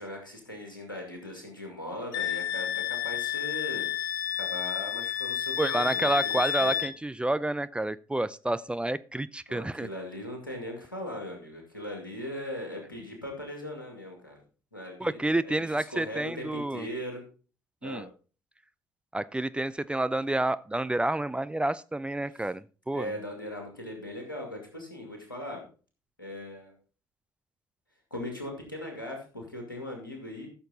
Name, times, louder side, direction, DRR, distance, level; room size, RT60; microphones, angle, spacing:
voice 1, 0.0-6.7 9.5-14.4 14.7-17.2 17.8-18.1 22.3-22.5 22.9-25.6 26.2-26.7 28.1-30.5, left 1 dB, 90° left, 2 dB, 2.3 m, -39 dB
Wind instrument woodwind instrument, 2.1-6.9, left 9 dB, 75° left, 0.7 m, -31 dB
voice 2, 5.6-9.9 15.0-16.9 17.8-18.1 19.1-23.1, right 1 dB, 10° right, 15 dB, 0.5 m, -29 dB
14.0 x 6.7 x 4.0 m, 0.37 s
figure-of-eight pair, 50°, 11 cm